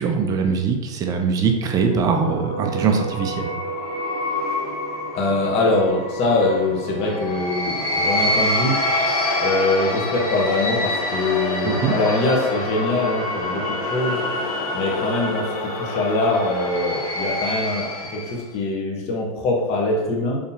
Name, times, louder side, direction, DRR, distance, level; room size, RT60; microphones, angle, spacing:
voice 1, 0.0-3.5 11.6-11.9, right 5 dB, 20° right, 4 dB, 0.4 m, -22 dB
sound 1, 1.7-18.5, left 1 dB, 85° left, 0.8 m, -26 dB
voice 2, 5.1-14.2 14.7-20.4, left 2 dB, 35° left, -1 dB, 0.8 m, -23 dB
3.8 x 2.8 x 2.7 m, 1.1 s
supercardioid pair, 140°, 18 cm